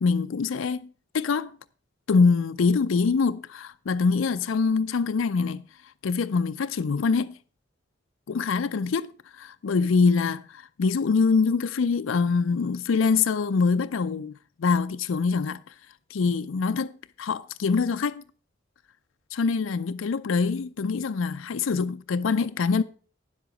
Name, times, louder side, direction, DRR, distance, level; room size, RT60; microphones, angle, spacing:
voice 1, 0.0-0.9 1.1-1.5 2.1-5.6 6.0-7.3 8.3-9.1 9.4-14.3 14.6-15.6 16.1-16.9 17.2-18.2 19.3-22.8, left 4 dB, 90° left, 0.5 m, -24 dB
10.0 x 7.7 x 5.2 m
head